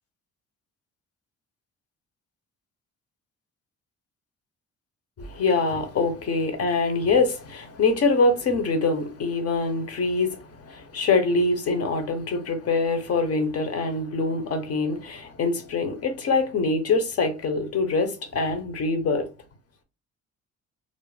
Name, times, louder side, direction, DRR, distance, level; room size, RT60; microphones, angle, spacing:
voice 1, 5.2-19.3, left 3 dB, 55° left, 0.7 m, -24 dB
2.5 x 2.1 x 3.2 m
cardioid pair, 90°, 30 cm